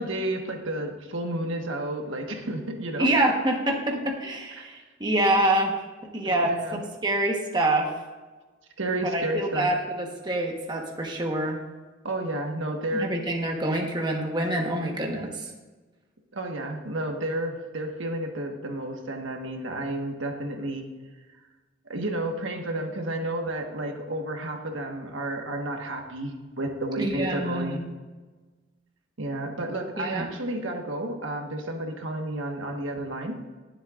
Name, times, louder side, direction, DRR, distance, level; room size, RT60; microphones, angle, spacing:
voice 1, 0.0-3.1 3.9-4.0 4.6-4.7 6.2-6.8 8.8-9.7 12.0-13.1 16.3-20.9 21.9-27.8 29.2-33.4, right 1 dB, 85° right, 3 dB, 1.4 m, -31 dB
voice 2, 3.0-5.8 6.1-7.9 9.1-11.6 12.9-15.5 27.0-27.9 30.0-30.3, right 1 dB, 20° right, 1 dB, 1.2 m, -26 dB
20.0 x 7.8 x 2.5 m, 1.3 s
head